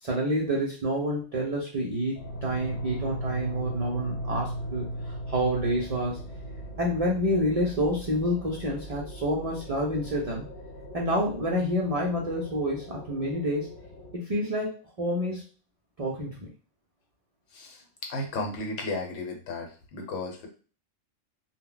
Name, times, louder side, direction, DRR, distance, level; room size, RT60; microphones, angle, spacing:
voice 1, 0.0-6.2 6.8-10.5 10.9-13.8 14.1-15.4 16.0-16.5, equal, 60° right, -3 dB, 0.4 m, -28 dB
sound 1, 2.1-14.1, right 1 dB, 50° left, 0.8 m, -38 dB
voice 2, 17.5-20.5, left 2 dB, 75° left, 2 dB, 1.0 m, -34 dB
2.1 x 2.1 x 3.7 m, 0.38 s
omnidirectional pair, 1.3 m